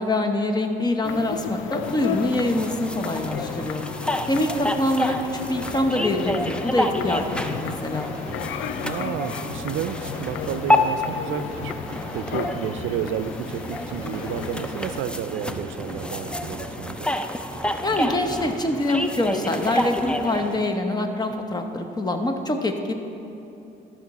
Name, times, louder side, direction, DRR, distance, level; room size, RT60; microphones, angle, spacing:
voice 1, 0.0-3.9 4.3-8.1 17.8-22.9, left 1 dB, 20° left, 5 dB, 0.8 m, -25 dB
sound 1, 1.0-15.0, left 9 dB, 80° left, 0.4 m, -34 dB
sound 2, 1.8-20.7, left 1 dB, 5° left, 0.4 m, -29 dB
sound 3, 4.3-18.6, right 1 dB, 20° right, 1.5 m, -41 dB
voice 2, 8.8-11.7 12.1-17.1, right 9 dB, 80° right, 11 dB, 0.5 m, -31 dB
13.0 x 5.8 x 4.1 m, 2.9 s
cardioid pair, 90°, 20 cm